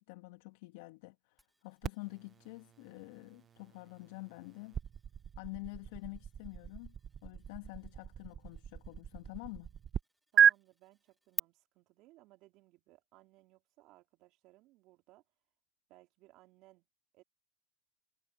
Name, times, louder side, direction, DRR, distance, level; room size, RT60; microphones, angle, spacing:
voice 1, 0.0-4.8 5.4-6.9 7.2-9.7, left 25 dB, 65° left, 1.5 m, -48 dB
sound 1, 1.4-11.4, right 1 dB, 5° right, 1.0 m, -53 dB
sound 2, 1.8-10.0 10.4-10.5, right 8 dB, 30° right, 0.4 m, -34 dB
voice 2, 10.3-15.2 15.9-16.9 17.1-17.2, right 19 dB, 55° right, 3.5 m, -63 dB
hypercardioid pair, 95°, 0 cm